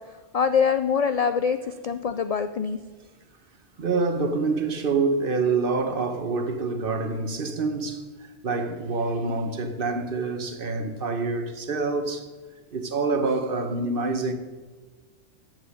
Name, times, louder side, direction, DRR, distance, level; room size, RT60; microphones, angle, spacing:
voice 1, 0.3-2.8, left 6 dB, 70° left, 0.3 m, -24 dB
voice 2, 3.8-8.0 8.4-12.3 12.7-14.3, right 3 dB, 55° right, 1.1 m, -26 dB
9.9 x 7.5 x 6.4 m
omnidirectional pair, 1.2 m